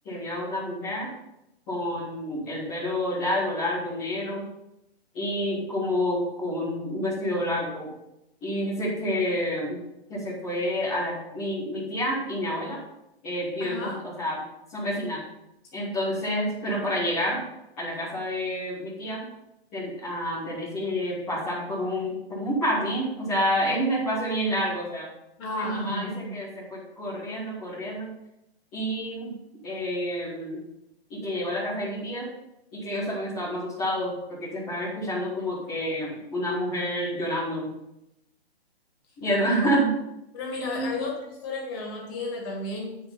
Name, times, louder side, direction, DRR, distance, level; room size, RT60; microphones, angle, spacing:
voice 1, 0.0-1.1 1.7-4.4 5.1-7.9 8.4-9.8 10.1-12.8 13.2-14.4 14.7-15.2 15.7-17.4 17.8-19.2 19.7-25.1 25.6-28.1 28.7-29.3 29.6-30.6 31.1-32.3 32.7-37.7 39.2-39.9 40.7-41.0, equal, 5° left, -13 dB, 0.4 m, -28 dB
voice 2, 13.6-14.0 25.4-26.1 39.6-39.7 40.3-43.0, left 2 dB, 20° left, -1 dB, 2.1 m, -33 dB
9.1 x 5.7 x 5.5 m, 0.87 s
hypercardioid pair, 165°, 32 cm